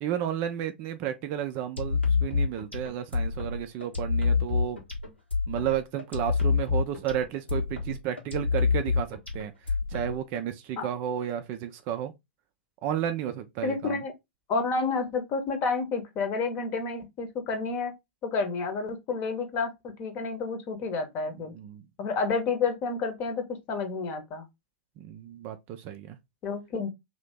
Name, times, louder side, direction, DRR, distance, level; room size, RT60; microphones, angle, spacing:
voice 1, 0.0-4.8 5.5-9.5 9.9-12.1 12.8-14.0 21.5-21.8 25.0-26.2, right 10 dB, 35° right, 0.4 m, -32 dB
sound 1, 1.8-10.4, left 5 dB, 90° left, 1.3 m, -27 dB
voice 2, 13.6-14.1 14.5-17.9 18.2-21.5 22.0-24.4 26.4-26.9, left 4 dB, 30° left, 0.9 m, -30 dB
2.8 x 2.8 x 3.3 m
figure-of-eight pair, 105°, 6 cm